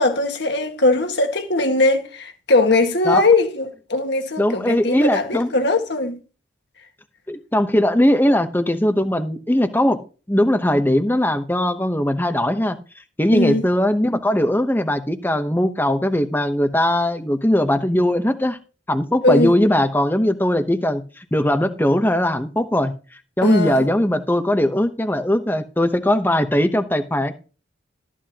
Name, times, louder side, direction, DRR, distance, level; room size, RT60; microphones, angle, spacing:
voice 1, 0.0-6.2 13.3-13.7 19.2-19.5 23.4-23.9, left 2 dB, 60° left, 1.7 m, -20 dB
voice 2, 4.4-5.5 7.3-10.0 10.3-12.8 13.2-18.6 18.9-22.9 23.4-27.3, left 1 dB, 10° left, 0.8 m, -19 dB
13.5 x 10.0 x 2.9 m
head